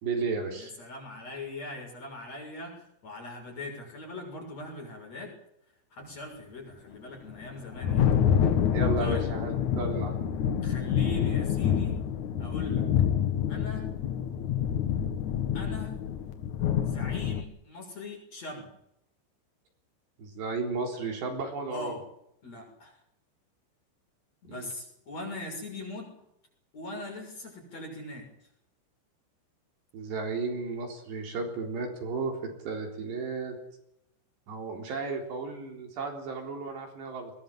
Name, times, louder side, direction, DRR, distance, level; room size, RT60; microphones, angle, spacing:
voice 1, 0.0-0.7 8.7-10.3 20.2-21.9 24.5-24.7 29.9-32.4 32.7-33.6 34.5-37.3, right 4 dB, 65° right, 2 dB, 6.0 m, -33 dB
voice 2, 0.5-2.8 3.0-5.3 5.9-8.1 9.0-9.2 10.6-12.0 12.4-12.8 13.5-13.9 15.5-15.9 16.8-18.7 21.7-22.0 22.4-23.0 24.4-26.1 26.7-28.3, left 2 dB, 35° left, 1 dB, 7.7 m, -41 dB
Thunder, 7.3-17.4, left 9 dB, 60° left, 2.1 m, -27 dB
22.0 x 19.5 x 7.7 m, 0.77 s
omnidirectional pair, 5.5 m